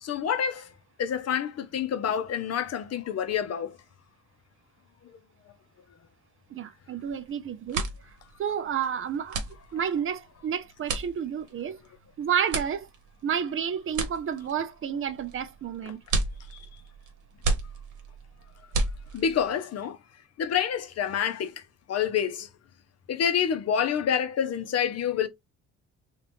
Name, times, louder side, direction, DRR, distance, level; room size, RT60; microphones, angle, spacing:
voice 1, 0.0-0.7 1.0-3.8 15.8-15.9 16.5-16.6 19.1-20.0 20.4-21.6 21.9-22.5 23.1-25.3, left 8 dB, 55° left, 0.7 m, -28 dB
voice 2, 6.5-7.9 8.4-9.4 9.7-11.8 12.2-12.9 13.2-16.0, right 8 dB, 45° right, 0.5 m, -30 dB
sound 1, 7.0-7.3 7.6-19.5, right 3 dB, 80° right, 0.9 m, -33 dB
2.9 x 2.4 x 3.3 m
cardioid pair, 90°, 30 cm